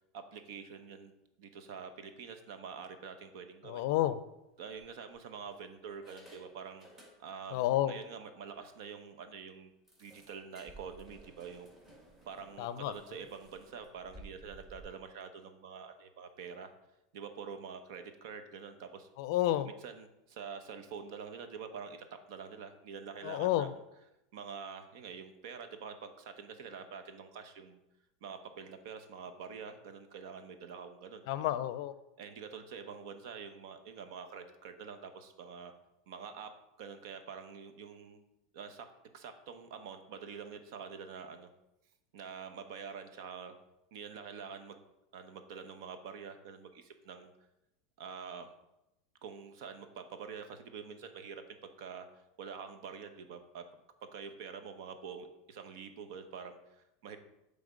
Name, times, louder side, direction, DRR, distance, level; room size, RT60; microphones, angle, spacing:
voice 1, 0.1-1.1 1.4-3.8 4.6-6.9 7.2-9.7 10.0-11.7 12.2-16.7 17.1-19.1 19.8-23.7 24.3-27.8 28.2-31.6 32.2-35.7 36.1-36.5 36.8-38.2 38.5-38.9 39.1-41.5 42.1-43.5 43.9-44.8 45.1-47.3 48.0-48.5 49.2-53.6 54.0-57.2, right 6 dB, 70° right, 9 dB, 0.8 m, -46 dB
voice 2, 3.6-4.2 7.5-8.0 12.6-12.9 19.2-19.7 23.2-23.7 31.3-31.9, left 13 dB, 65° left, 14 dB, 0.4 m, -30 dB
sound 1, 3.9-4.1 4.8-5.4 5.9-7.6 7.9-8.0 8.4-8.5 8.9-9.0 9.9-14.8, right 1 dB, 15° right, 1.9 m, -57 dB
7.9 x 3.5 x 5.1 m, 0.90 s
supercardioid pair, 130°, 2 cm